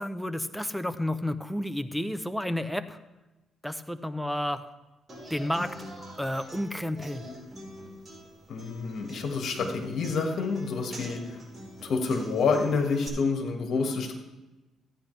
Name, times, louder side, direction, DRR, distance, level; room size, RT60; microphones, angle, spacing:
voice 1, 0.0-3.0 3.6-4.6 5.3-5.7 6.2-7.2, left 1 dB, ahead, 10 dB, 0.7 m, -31 dB
Human voice / Acoustic guitar, 5.1-13.1, equal, 30° right, 4.7 m, -45 dB
voice 2, 8.5-11.2 11.8-14.1, left 4 dB, 65° left, 3 dB, 2.0 m, -28 dB
15.0 x 9.8 x 3.4 m, 1.1 s
cardioid pair, 90°, 0 cm